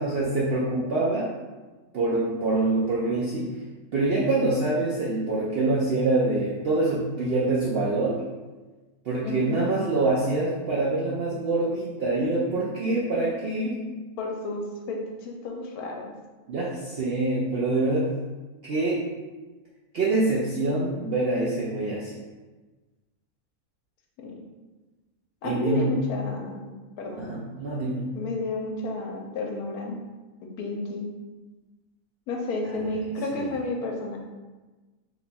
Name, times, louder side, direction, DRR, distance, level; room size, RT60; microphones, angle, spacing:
voice 1, 0.0-1.3 1.9-3.5 3.9-8.2 9.0-13.8 16.5-18.1 18.7-19.1 19.9-22.2 25.4-26.0 27.2-28.1 33.3-33.4, right 2 dB, 70° right, -6 dB, 0.5 m, -25 dB
voice 2, 9.2-9.6 14.2-16.1 24.2-24.3 25.4-27.3 28.1-30.0 30.6-31.1 32.3-34.2, left 2 dB, 90° left, 1 dB, 1.1 m, -31 dB
2.9 x 2.3 x 4.0 m, 1.2 s
omnidirectional pair, 1.6 m